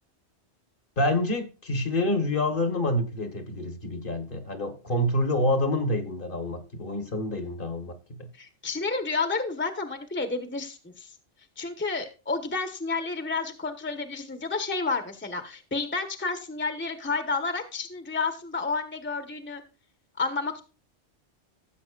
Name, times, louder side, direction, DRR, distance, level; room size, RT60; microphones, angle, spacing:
voice 1, 1.0-8.3, left 1 dB, 50° left, 1.5 m, -27 dB
voice 2, 8.4-11.1 11.6-19.6 20.2-20.6, left 4 dB, 10° left, 1.0 m, -30 dB
15.5 x 7.5 x 2.4 m
omnidirectional pair, 1.2 m